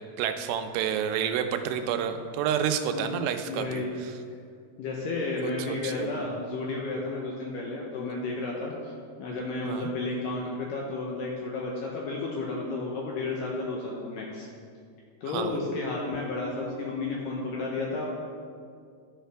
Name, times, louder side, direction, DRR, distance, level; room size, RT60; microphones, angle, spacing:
voice 1, 0.2-4.1 5.7-6.1 9.7-9.9 15.3-15.6, right 8 dB, 90° right, 7 dB, 2.7 m, -29 dB
voice 2, 2.9-4.0 4.8-8.9 9.2-14.5 15.2-18.1, left 3 dB, 80° left, -2 dB, 2.0 m, -32 dB
12.5 x 5.7 x 3.4 m, 2.3 s
omnidirectional pair, 4.7 m